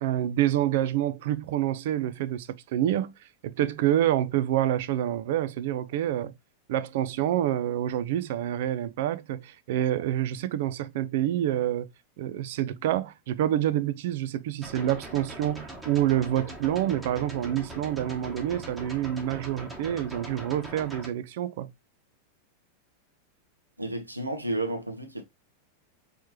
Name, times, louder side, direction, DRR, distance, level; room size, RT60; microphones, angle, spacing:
voice 1, 0.0-3.1 3.4-6.3 6.7-11.9 12.2-21.7, right 12 dB, 55° right, 0.4 m, -27 dB
sound 1, 14.6-21.1, right 1 dB, 10° right, 1.0 m, -41 dB
voice 2, 23.8-25.2, right 1 dB, 85° right, 0.8 m, -31 dB
4.2 x 3.1 x 3.1 m
figure-of-eight pair, 90°, 0 cm